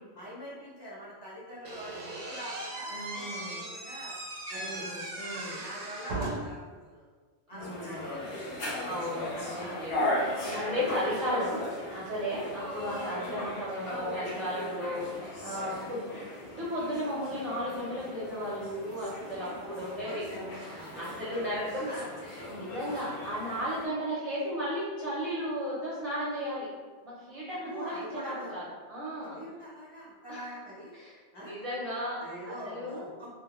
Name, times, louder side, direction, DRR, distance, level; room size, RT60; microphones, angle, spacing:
voice 1, 0.1-4.1 4.5-4.9 5.3-7.1 7.5-8.9 9.6-9.8 10.6-10.8 12.3-12.5 15.7-16.0 19.3-20.2 20.6-21.4 21.9-22.1 22.9-23.1 27.5-28.6 29.2-30.9 31.3-31.6 32.2-33.3, equal, 30° left, -9 dB, 0.6 m, -44 dB
Slam / Squeak, 1.6-6.6, right 2 dB, 80° right, 0.9 m, -38 dB
voice 2, 2.9-3.6 4.5-5.6 7.5-8.0 8.9-11.6 11.9-15.1 15.4-16.2 16.5-20.2 20.6-26.7 27.0-28.6 28.9-29.4 30.3-30.6 30.9-33.1, equal, 40° right, -9 dB, 0.5 m, -35 dB
sound 1, 7.6-23.9, left 1 dB, 60° left, 0.8 m, -37 dB
2.2 x 2.1 x 2.9 m, 1.5 s
omnidirectional pair, 1.2 m